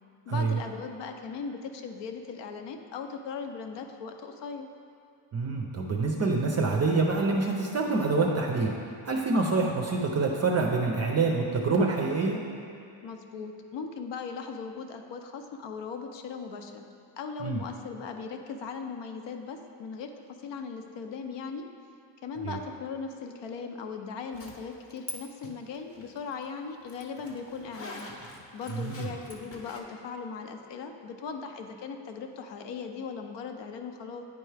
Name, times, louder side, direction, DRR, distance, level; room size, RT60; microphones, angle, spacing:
voice 1, 0.3-4.7 13.0-16.9 17.2-21.7 22.2-28.1 28.5-34.2, left 5 dB, 60° left, 5 dB, 0.7 m, -38 dB
voice 2, 5.3-12.4 17.4-17.6 22.4-22.6 28.7-29.1, right 3 dB, 35° right, 0 dB, 0.5 m, -26 dB
Zipper (clothing), 24.3-25.2 25.4-29.8, left 1 dB, 30° left, 0.8 m, -44 dB
9.5 x 4.5 x 3.3 m, 2.4 s
cardioid pair, 130°, 48 cm